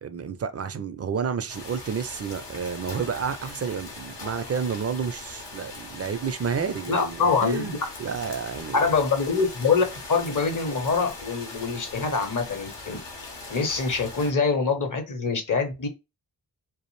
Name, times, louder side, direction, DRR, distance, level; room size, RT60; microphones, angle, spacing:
voice 1, 0.0-8.8, right 6 dB, 40° right, 0.4 m, -30 dB
sound 1, 1.5-14.3, left 3 dB, 85° left, 0.8 m, -40 dB
voice 2, 6.9-7.8 8.7-13.0 13.5-15.9, left 4 dB, 50° left, 0.8 m, -24 dB
2.4 x 2.0 x 3.0 m
cardioid pair, 40°, 41 cm